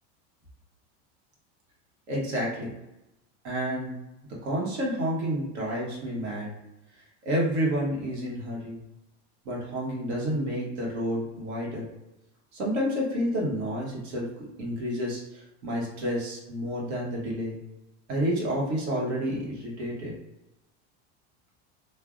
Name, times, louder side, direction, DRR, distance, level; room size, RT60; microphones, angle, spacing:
voice 1, 2.1-2.7 3.4-3.9 4.4-6.5 7.2-8.8 9.4-11.9 12.5-17.6 18.1-20.1, equal, 80° right, -3 dB, 1.3 m, -30 dB
3.3 x 2.3 x 2.4 m, 0.94 s
supercardioid pair, 120°, 33 cm